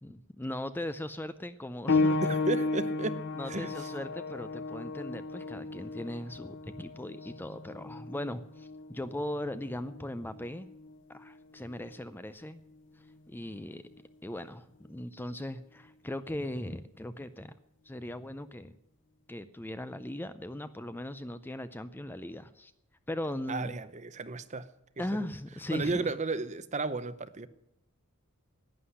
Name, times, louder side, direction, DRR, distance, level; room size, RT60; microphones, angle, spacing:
voice 1, 0.0-2.3 3.3-10.7 11.1-12.6 13.3-13.8 14.2-17.5 17.8-18.8 19.3-22.7 23.1-23.7 25.0-26.1, left 1 dB, 10° left, 12 dB, 0.5 m, -38 dB
sound 1, 1.9-12.1 13.1-13.2 13.9-14.0, left 3 dB, 55° left, 0.7 m, -34 dB
voice 2, 2.2-3.9 23.5-24.7 25.7-27.5, right 3 dB, 35° right, 14 dB, 0.7 m, -34 dB
11.5 x 9.8 x 9.7 m, 0.82 s
head